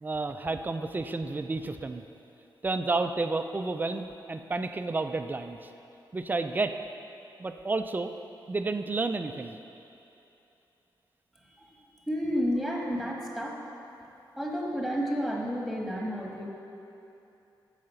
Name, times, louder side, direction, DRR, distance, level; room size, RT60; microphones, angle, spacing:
voice 1, 0.0-2.0 2.6-5.7 6.1-6.8 7.4-8.1 8.5-9.6, right 3 dB, 25° right, 8 dB, 0.4 m, -31 dB
voice 2, 11.6-13.6 14.4-16.5, equal, 5° left, -2 dB, 1.5 m, -31 dB
14.5 x 4.9 x 5.7 m, 2.9 s
wide cardioid pair, 140°, 8 cm